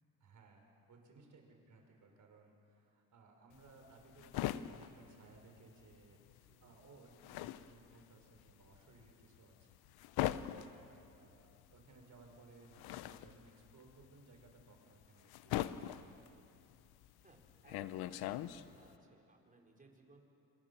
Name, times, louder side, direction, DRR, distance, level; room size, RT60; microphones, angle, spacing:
voice 1, 0.2-9.7 10.3-10.9 11.2-16.5, right 3 dB, 55° right, 2 dB, 5.7 m, -62 dB
sound 1, 3.5-6.1 6.3-18.9, left 13 dB, 90° left, 0.8 m, -42 dB
voice 2, 17.2-20.2, right 3 dB, 20° right, 1 dB, 4.5 m, -63 dB
27.0 x 24.0 x 7.3 m, 2.7 s
cardioid pair, 100°, 37 cm